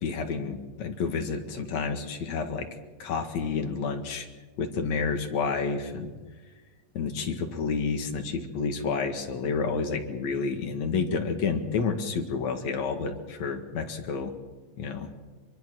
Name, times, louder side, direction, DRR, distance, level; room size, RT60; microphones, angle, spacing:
voice 1, 0.0-2.7 3.0-4.3 4.6-6.1 6.9-14.3 14.8-15.1, left 5 dB, 55° left, 5 dB, 2.7 m, -30 dB
24.0 x 23.0 x 6.2 m, 1.3 s
omnidirectional pair, 4.3 m